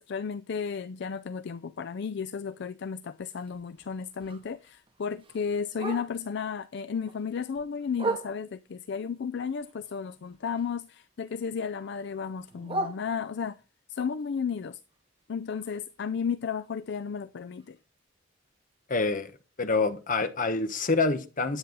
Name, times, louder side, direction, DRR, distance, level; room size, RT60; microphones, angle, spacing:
voice 1, 0.0-13.6 13.9-14.8 15.3-17.8, left 6 dB, 60° left, 0.4 m, -33 dB
Bark, 3.2-6.4 6.8-8.7 9.2-11.0 11.3-13.6 14.1-18.0 18.3-18.4 18.7-19.1 19.5-19.6 20.0-20.1 20.6-20.7, right 2 dB, 25° right, 2.3 m, -40 dB
voice 2, 18.9-19.3 19.6-21.6, left 3 dB, 45° left, 1.1 m, -26 dB
10.0 x 8.8 x 3.9 m
head